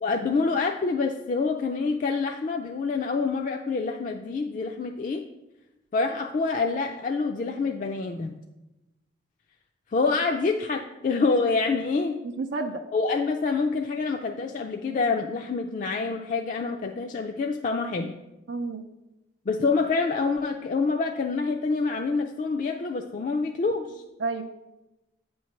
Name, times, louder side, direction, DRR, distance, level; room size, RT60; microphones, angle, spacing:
voice 1, 0.0-5.2 5.9-8.3 9.9-12.2 12.9-18.1 19.5-24.0, left 4 dB, 45° left, 2 dB, 0.3 m, -26 dB
voice 2, 12.4-12.8 18.5-18.8 24.2-24.4, right 3 dB, 80° right, 5 dB, 0.5 m, -30 dB
8.1 x 3.1 x 5.8 m, 0.99 s
head